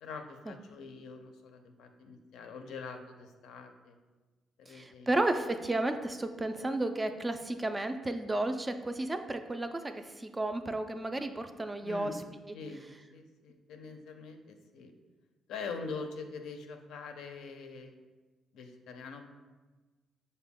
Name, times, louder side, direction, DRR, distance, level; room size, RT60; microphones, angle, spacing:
voice 1, 0.0-3.9 4.6-5.1 11.8-12.2 12.5-14.9 15.5-17.9 18.5-19.2, left 4 dB, 85° left, 5 dB, 0.4 m, -44 dB
voice 2, 4.7-12.1, right 2 dB, 20° right, 8 dB, 0.3 m, -33 dB
5.7 x 2.2 x 3.5 m, 1.3 s
cardioid pair, 90°, 0 cm